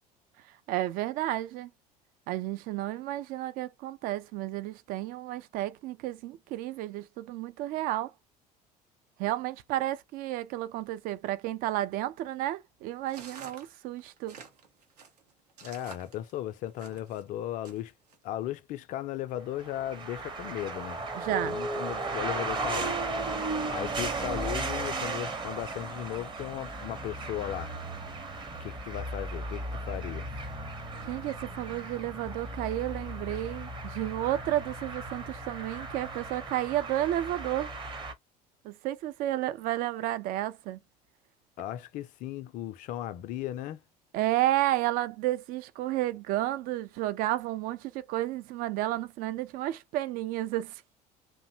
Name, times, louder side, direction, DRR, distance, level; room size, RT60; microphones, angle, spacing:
voice 1, 0.7-1.7 2.3-8.1 9.2-14.4 21.2-21.6 31.1-37.7 38.6-40.8 44.1-50.7, right 14 dB, 45° right, 0.4 m, -32 dB
sound 1, 13.1-17.2 17.6-18.2, right 5 dB, 75° right, 0.7 m, -49 dB
voice 2, 15.6-17.9 18.2-23.0 23.7-27.7 28.6-30.3 41.6-43.8, left 12 dB, 40° left, 0.4 m, -36 dB
sound 2, 19.5-38.1, right 2 dB, 25° right, 0.8 m, -36 dB
2.6 x 2.0 x 2.6 m
figure-of-eight pair, 65°, 20 cm